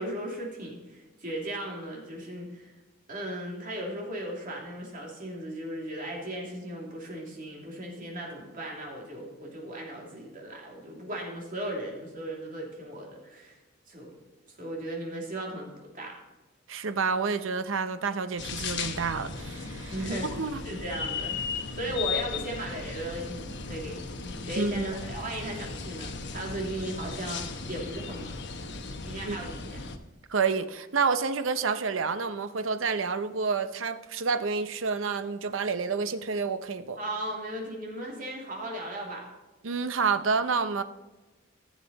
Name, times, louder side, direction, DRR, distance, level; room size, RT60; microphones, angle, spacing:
voice 1, 0.0-2.7 3.1-13.6 13.9-14.2 14.5-16.1 19.9-20.3 20.6-21.4 21.7-28.4 29.0-29.8 37.0-39.3, right 1 dB, 45° right, -1 dB, 2.7 m, -36 dB
voice 2, 16.7-19.9 20.3-20.6 24.6-24.9 29.2-29.4 29.6-29.7 30.3-37.0 39.6-40.8, right 5 dB, 75° right, 11 dB, 0.7 m, -29 dB
sound 1, 18.4-30.0, left 5 dB, 60° left, 0.9 m, -36 dB
14.5 x 7.4 x 4.0 m, 1.1 s
head